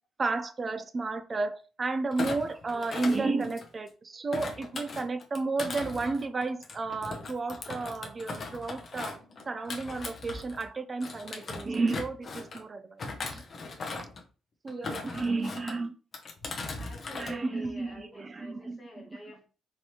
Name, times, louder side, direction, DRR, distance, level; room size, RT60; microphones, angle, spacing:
voice 1, 0.2-9.2 9.5-13.0 13.3-13.4 14.6-15.9 17.1-18.8, right 3 dB, 20° right, 10 dB, 0.3 m, -32 dB
Thump thud, 2.1-3.9 4.3-10.7 11.0-12.6 13.0-14.2 14.7-15.7 16.1-17.3 17.6-18.0, left 3 dB, 35° left, 0.6 m, -39 dB
voice 2, 14.7-15.4 16.7-19.5, equal, 15° left, -3 dB, 1.4 m, -48 dB
4.4 x 3.2 x 2.7 m, 0.36 s
cardioid pair, 170°, 0 cm